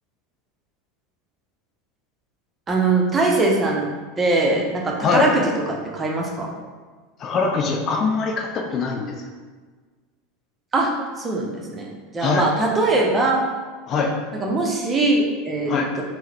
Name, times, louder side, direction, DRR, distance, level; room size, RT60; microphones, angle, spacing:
voice 1, 2.7-3.8 4.2-6.5 10.7-13.4 14.4-16.0, right 2 dB, 20° right, -1 dB, 0.6 m, -21 dB
voice 2, 7.2-9.1 12.2-12.5 13.9-14.2 15.7-15.9, left 4 dB, 40° left, 2 dB, 0.3 m, -22 dB
3.7 x 2.0 x 2.8 m, 1.4 s
figure-of-eight pair, 80°, 0 cm